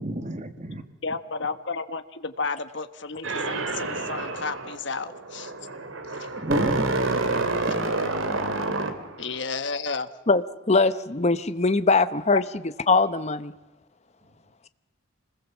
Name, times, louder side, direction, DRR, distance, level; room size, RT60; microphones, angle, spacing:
voice 1, 0.0-0.8 6.4-7.8, right 1 dB, 35° right, 8 dB, 1.7 m, -31 dB
voice 2, 1.0-5.5 6.1-6.3 9.2-10.1, left 4 dB, 60° left, 10 dB, 1.3 m, -32 dB
sound 1, 3.2-9.4, right 2 dB, 75° right, 2.3 m, -28 dB
voice 3, 10.7-12.4 12.9-13.5, left 3 dB, 30° left, 13 dB, 0.8 m, -21 dB
26.5 x 20.5 x 7.3 m, 1.1 s
head